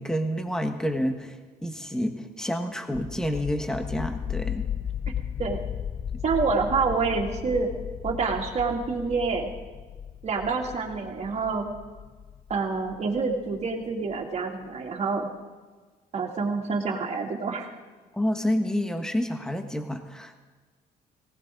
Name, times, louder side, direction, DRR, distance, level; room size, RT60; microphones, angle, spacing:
voice 1, 0.0-4.6 18.1-20.3, equal, 5° left, 6 dB, 1.4 m, -29 dB
sound 1, 2.9-13.6, left 8 dB, 35° left, 0.5 m, -35 dB
voice 2, 6.2-7.7 8.0-9.5 10.2-11.6 12.5-15.3 16.1-17.7, right 4 dB, 40° right, 1 dB, 2.8 m, -27 dB
19.0 x 18.0 x 3.9 m, 1.4 s
cardioid pair, 110°, 17 cm